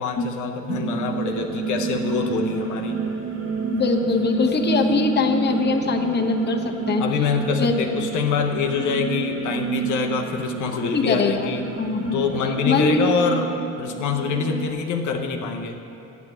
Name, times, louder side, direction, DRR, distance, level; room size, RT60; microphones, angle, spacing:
voice 1, 0.0-3.0 7.0-11.7 12.1-13.5 13.8-15.8, left 6 dB, 75° left, 3 dB, 0.8 m, -25 dB
sound 1, 0.7-14.7, right 6 dB, 45° right, 1.2 m, -30 dB
sound 2, 1.1-13.1, right 1 dB, 70° right, 2.1 m, -41 dB
voice 2, 3.7-7.0 7.6-7.9 10.8-11.5 11.8-12.2 12.7-13.1, left 4 dB, 35° left, 3 dB, 0.9 m, -22 dB
9.5 x 6.0 x 7.7 m, 2.7 s
cardioid pair, 90°, 30 cm